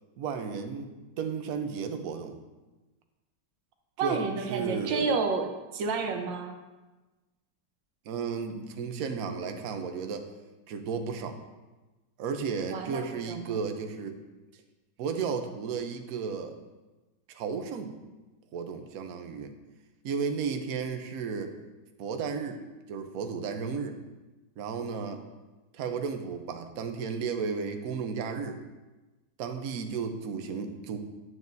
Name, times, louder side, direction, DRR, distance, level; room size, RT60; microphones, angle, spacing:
voice 1, 0.2-0.9 1.2-2.4 4.0-4.2 4.5-5.2 8.0-10.3 10.7-11.4 12.2-14.1 15.0-16.5 17.3-17.9 18.5-19.5 20.0-21.6 22.0-22.6 22.9-24.0 24.6-25.2 25.7-28.6 29.4-31.0, right 5 dB, 60° right, 6 dB, 1.1 m, -33 dB
voice 2, 4.0-6.6 12.7-13.0 13.3-13.6, right 4 dB, 90° right, 5 dB, 1.5 m, -30 dB
9.5 x 7.8 x 2.7 m, 1.1 s
omnidirectional pair, 1.9 m